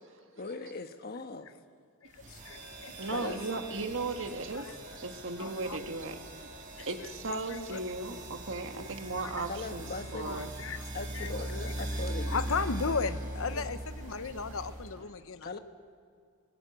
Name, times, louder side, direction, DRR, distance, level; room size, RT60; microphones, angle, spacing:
voice 1, 0.3-1.5 3.0-3.7 9.5-10.4 10.9-12.6 13.5-13.7 15.4-15.6, left 3 dB, 45° left, 7 dB, 1.3 m, -40 dB
voice 2, 2.0-2.9 4.5-4.7 5.4-5.8 6.8-6.9 7.3-7.8 8.7-8.9 9.2-9.3 10.3-10.8 11.1-11.3 12.3-15.6, left 5 dB, 65° left, 12 dB, 0.9 m, -36 dB
sound 1, 2.1-15.0, right 1 dB, 35° right, 6.8 m, -40 dB
voice 3, 3.0-6.5 6.8-9.9 10.1-10.5 14.3-14.6, right 3 dB, 60° right, 6 dB, 1.7 m, -37 dB
21.5 x 18.5 x 9.0 m, 2.3 s
head